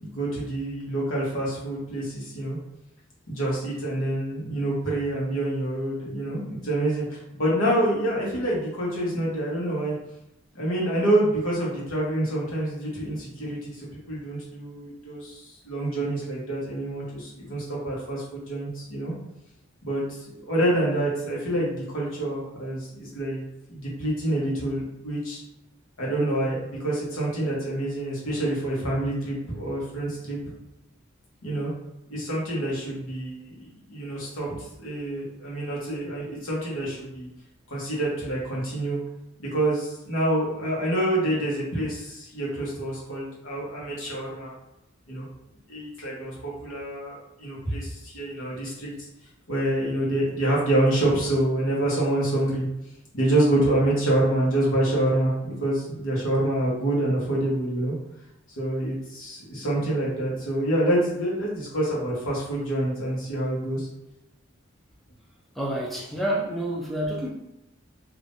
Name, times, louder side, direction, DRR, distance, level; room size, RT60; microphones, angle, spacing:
voice 1, 0.0-2.6 3.3-10.0 10.5-19.1 19.8-20.0 20.5-23.4 23.7-25.4 26.0-30.4 31.4-31.7 32.1-34.5 34.8-37.3 37.7-39.0 39.4-44.5 45.1-45.3 45.7-48.9 49.5-52.7 53.1-57.9 58.6-63.9, right 1 dB, 85° left, -5 dB, 1.2 m, -27 dB
voice 2, 65.5-67.3, right 1 dB, ahead, -3 dB, 0.6 m, -28 dB
3.5 x 2.7 x 2.6 m, 0.88 s
head